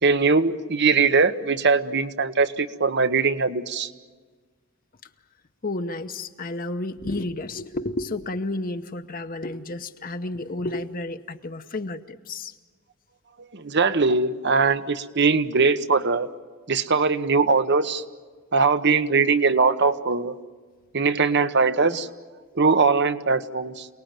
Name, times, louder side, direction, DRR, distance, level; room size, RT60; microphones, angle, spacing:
voice 1, 0.0-3.9 13.5-16.3 16.7-18.0 18.5-20.3 20.9-22.1 22.5-23.9, right 4 dB, 55° right, 12 dB, 1.1 m, -21 dB
voice 2, 5.6-12.5, left 2 dB, 40° left, 7 dB, 0.9 m, -31 dB
28.0 x 19.5 x 9.0 m, 1.4 s
head